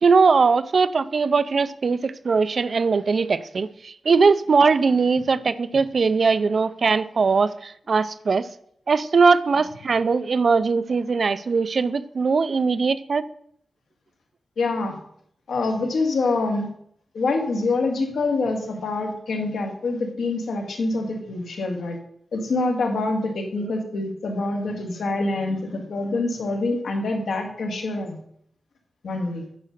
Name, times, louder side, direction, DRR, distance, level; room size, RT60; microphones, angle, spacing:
voice 1, 0.0-8.5 8.9-13.2 23.6-23.7, right 4 dB, 45° right, 14 dB, 0.4 m, -20 dB
voice 2, 14.6-15.0 15.5-16.7 17.1-22.0 22.3-28.2 29.0-29.4, left 3 dB, 80° left, 2 dB, 2.0 m, -25 dB
9.6 x 5.4 x 6.5 m, 0.67 s
wide cardioid pair, 180°, 0 cm